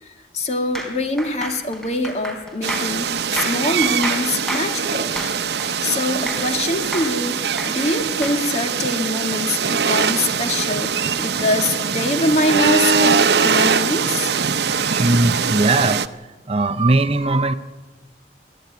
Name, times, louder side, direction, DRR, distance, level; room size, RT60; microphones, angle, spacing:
voice 1, 0.0-5.1 5.8-14.3, left 2 dB, 35° left, 6 dB, 2.1 m, -24 dB
sound 1, 0.8-6.6 6.9-8.4, equal, ahead, 4.2 m, -30 dB
sound 2, 2.6-16.1, right 6 dB, 70° right, 0.8 m, -22 dB
voice 2, 14.8-16.2 16.5-17.5, right 2 dB, 35° right, 11 dB, 0.7 m, -19 dB
22.5 x 14.5 x 9.4 m, 1.2 s
head